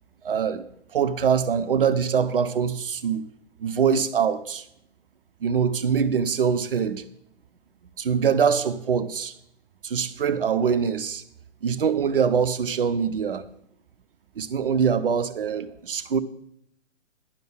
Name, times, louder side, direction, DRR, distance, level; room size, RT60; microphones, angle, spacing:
voice 1, 0.2-0.7 0.9-3.3 3.6-4.6 5.4-7.0 8.0-9.3 9.8-11.2 11.6-13.5 14.4-16.2, right 7 dB, 50° right, 0.7 m, -23 dB
10.5 x 5.4 x 7.5 m
figure-of-eight pair, 130°, 37 cm